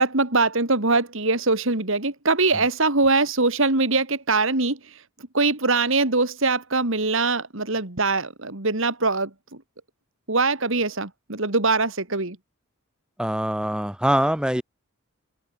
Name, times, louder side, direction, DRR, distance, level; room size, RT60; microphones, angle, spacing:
voice 1, 0.0-4.8 5.3-9.3 10.3-12.4, right 3 dB, 60° right, 2.5 m, -22 dB
voice 2, 13.2-14.6, equal, 5° right, 1.2 m, -23 dB
head